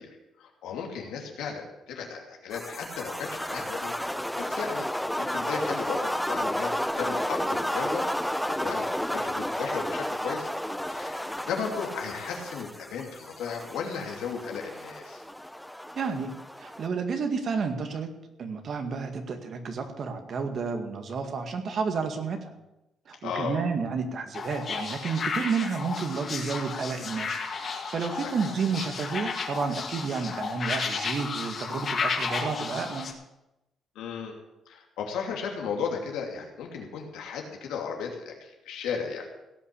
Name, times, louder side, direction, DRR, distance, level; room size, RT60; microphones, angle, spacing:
voice 1, 0.0-3.9 4.4-4.8 5.2-8.0 8.5-10.5 10.9-15.2 23.2-23.6 28.4-28.5 33.9-34.3 34.7-39.3, left 6 dB, 90° left, 1 dB, 2.7 m, -35 dB
sound 1, 2.5-16.9, equal, 5° left, 0.5 m, -32 dB
voice 2, 16.0-18.1 18.4-22.5 23.1-33.1, right 5 dB, 55° right, 6 dB, 1.9 m, -31 dB
sound 2, 24.3-33.1, left 5 dB, 50° left, 2.1 m, -33 dB
17.5 x 5.8 x 8.4 m, 0.94 s
cardioid pair, 90°, 0 cm